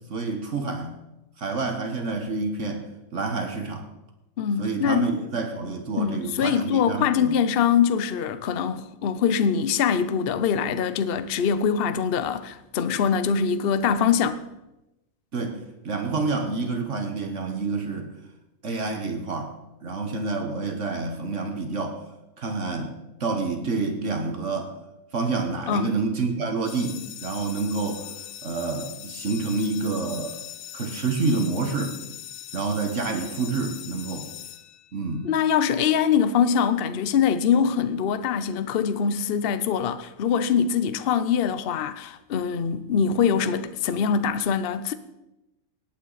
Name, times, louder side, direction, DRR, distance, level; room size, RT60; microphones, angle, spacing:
voice 1, 0.1-1.0 1.4-2.8 3.1-3.9 4.6-7.3 15.3-18.1 18.6-19.5 19.8-22.0 22.4-22.9 23.2-24.8 25.1-28.1 28.4-30.4 30.7-32.0 32.5-34.3 34.9-35.3, right 3 dB, 60° right, 1.6 m, -28 dB
voice 2, 4.4-5.1 6.0-14.4 25.7-25.9 35.2-44.9, left 7 dB, 55° left, 0.8 m, -23 dB
sound 1, 26.7-35.3, left 12 dB, 85° left, 1.1 m, -40 dB
18.5 x 9.1 x 4.0 m
omnidirectional pair, 1.4 m